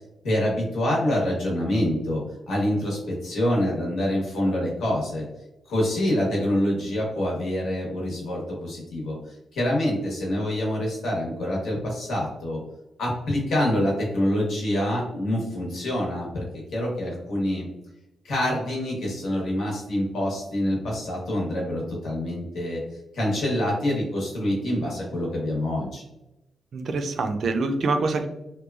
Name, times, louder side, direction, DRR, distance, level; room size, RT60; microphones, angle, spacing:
voice 1, 0.2-2.2 2.5-5.2 5.7-12.6 13.0-16.4 16.7-17.7 18.2-22.8 23.1-26.0, left 1 dB, 75° left, -3 dB, 1.1 m, -26 dB
voice 2, 26.7-28.3, right 3 dB, 55° right, 7 dB, 0.3 m, -25 dB
2.9 x 2.2 x 2.3 m, 0.94 s
wide cardioid pair, 150°, 0 cm